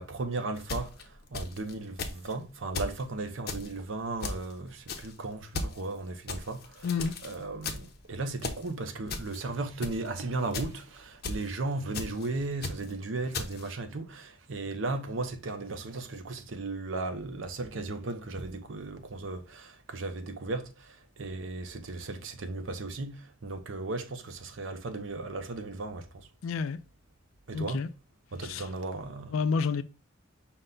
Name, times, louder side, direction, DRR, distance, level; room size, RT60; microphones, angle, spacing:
voice 1, 0.0-6.9 7.2-26.3 27.5-27.9 28.3-29.3, right 3 dB, 70° right, 0.7 m, -36 dB
sound 1, 0.6-1.7 2.0-2.3 2.8-3.0 3.5-3.7 4.2-4.5 4.9-5.1 5.5-5.8 6.3-7.4 7.6-8.0 8.4-8.7 9.1-9.4 9.8-10.1 10.5-10.8 11.2-11.5 11.9-12.3 12.6-12.9 13.3-13.7, left 3 dB, 50° left, 0.7 m, -36 dB
voice 2, 6.8-7.2 26.4-26.8 27.5-27.9 28.4-28.7 29.3-29.8, left 5 dB, 85° left, 0.4 m, -29 dB
5.5 x 2.2 x 3.7 m
head